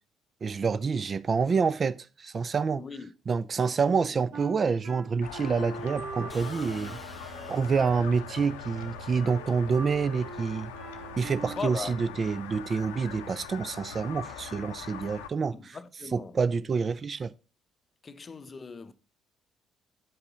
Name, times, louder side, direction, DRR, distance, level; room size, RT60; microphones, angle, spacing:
voice 1, 0.4-2.8 3.3-7.0 7.5-10.7 11.2-15.5 16.1-17.3, right 5 dB, 35° right, 0.3 m, -27 dB
voice 2, 2.7-3.1 11.4-12.2 15.5-16.4 18.0-18.9, left 5 dB, 35° left, 0.6 m, -39 dB
Wind instrument woodwind instrument, 4.3-11.8, right 4 dB, 65° right, 2.4 m, -42 dB
sound 1, 5.2-15.3, left 6 dB, 70° left, 0.6 m, -42 dB
sound 2, 6.3-8.2, equal, 5° right, 0.9 m, -47 dB
8.9 x 5.3 x 3.9 m
figure-of-eight pair, 45°, 0 cm